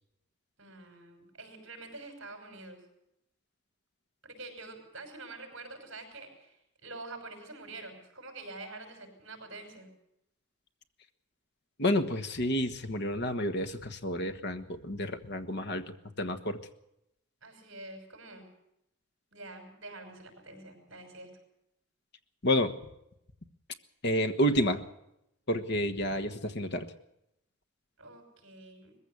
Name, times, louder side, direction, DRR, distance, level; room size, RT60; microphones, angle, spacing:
voice 1, 0.6-2.8 4.2-6.6 6.8-9.9 17.4-18.5 19.3-21.3 28.0-29.0, right 2 dB, 60° right, 5 dB, 6.0 m, -46 dB
voice 2, 11.8-15.8 16.2-16.6 22.4-22.7 24.0-24.8 25.5-26.9, equal, 55° left, 8 dB, 1.4 m, -29 dB
20.5 x 15.5 x 8.3 m, 0.82 s
head